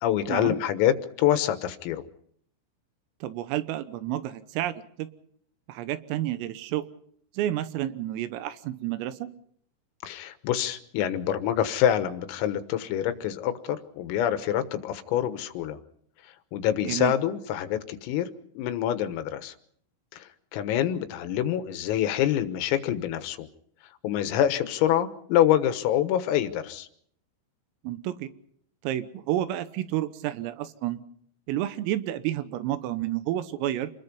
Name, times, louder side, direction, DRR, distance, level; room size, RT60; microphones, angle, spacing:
voice 1, 0.0-2.0 10.0-15.8 16.5-18.3 18.6-19.5 20.1-23.5 24.0-26.9, left 11 dB, 85° left, 10 dB, 3.9 m, -26 dB
voice 2, 3.2-5.1 5.7-6.8 7.4-9.3 16.8-17.1 27.8-28.3 28.8-31.0 31.5-33.9, right 13 dB, 85° right, 12 dB, 3.8 m, -30 dB
28.0 x 20.5 x 5.4 m, 0.65 s
omnidirectional pair, 5.9 m